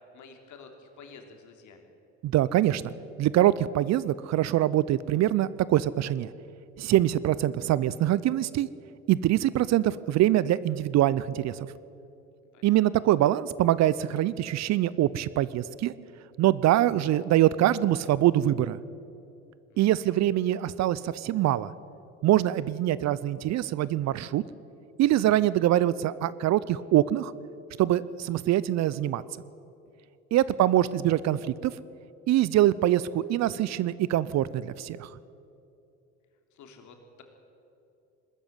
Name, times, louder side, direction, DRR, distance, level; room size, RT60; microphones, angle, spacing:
voice 1, 0.1-1.9 12.5-12.8 19.7-20.2 30.4-30.8 36.5-37.2, left 4 dB, 55° left, 4 dB, 3.3 m, -51 dB
voice 2, 2.2-2.9 3.2-6.3 6.8-8.7 9.1-11.7 12.6-15.9 16.4-18.8 19.8-21.7 22.2-24.4 25.0-27.3 27.8-29.2 30.3-31.7 32.3-35.1, right 13 dB, 50° right, 19 dB, 0.7 m, -24 dB
20.5 x 13.5 x 9.4 m, 2.8 s
hypercardioid pair, 65°, 35 cm